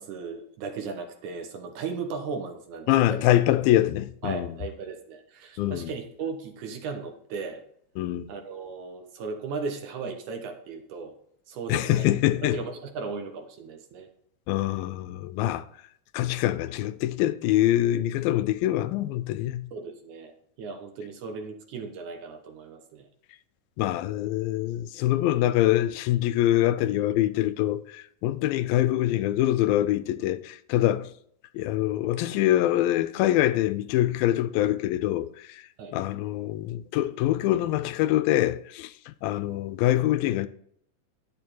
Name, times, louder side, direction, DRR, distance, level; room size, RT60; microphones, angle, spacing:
voice 1, 0.0-3.2 4.2-7.6 8.3-11.2 11.5-12.1 12.5-14.1 19.7-20.3 20.6-23.1 35.8-36.0, right 4 dB, 65° right, 2.2 m, -36 dB
voice 2, 2.9-4.5 5.6-5.9 8.0-8.3 11.7-12.6 14.5-15.7 16.1-19.7 23.8-31.1 31.5-35.6 35.9-40.5, left 14 dB, 90° left, 2.4 m, -24 dB
10.5 x 6.9 x 4.4 m
omnidirectional pair, 4.1 m